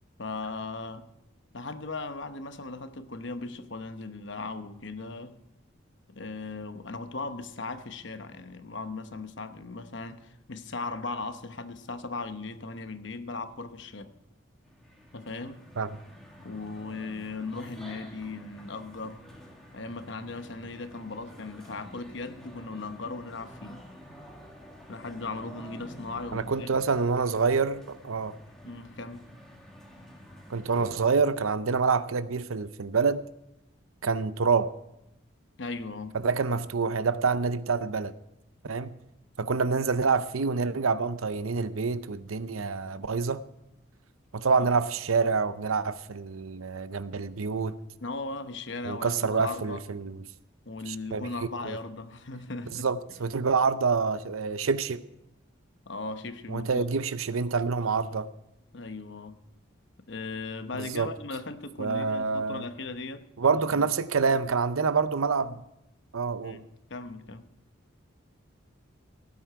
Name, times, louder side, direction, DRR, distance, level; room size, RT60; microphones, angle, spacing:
voice 1, 0.2-1.1 1.5-5.3 6.1-14.1 15.1-15.6 16.4-19.2 19.7-23.8 24.9-26.7 28.6-29.2 35.6-36.2 44.5-44.7 48.0-49.8 50.6-52.9 55.9-56.9 58.7-59.4 60.1-63.3 63.7-63.9 66.4-67.5, left 3 dB, 60° left, 0.9 m, -38 dB
sound 1, 14.6-31.2, equal, ahead, 2.0 m, -49 dB
voice 2, 26.3-28.4 30.5-33.2 34.0-34.7 36.1-38.1 38.6-39.0 39.4-43.4 44.3-47.7 48.8-50.2 50.9-51.3 51.6-51.8 52.8-55.0 56.5-58.3 60.8-61.1 61.8-62.6 63.4-65.6 66.1-66.6, right 5 dB, 90° right, 0.7 m, -27 dB
17.5 x 9.5 x 4.8 m
head